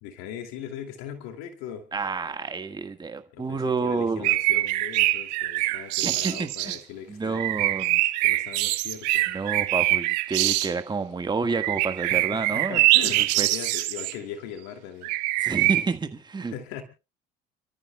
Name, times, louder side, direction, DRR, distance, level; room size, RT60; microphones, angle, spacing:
voice 1, 0.0-1.8 3.3-7.4 8.2-9.3 12.1-15.2 16.5-16.8, left 9 dB, 80° left, 2.5 m, -39 dB
voice 2, 1.9-4.3 6.0-6.8 7.1-8.0 9.3-13.5 15.4-16.5, right 4 dB, 20° right, 1.6 m, -29 dB
sound 1, 4.2-6.8 7.3-10.7 11.5-14.1 15.0-15.9, right 18 dB, 90° right, 1.1 m, -24 dB
30.0 x 13.5 x 2.3 m
supercardioid pair, 85°, 21 cm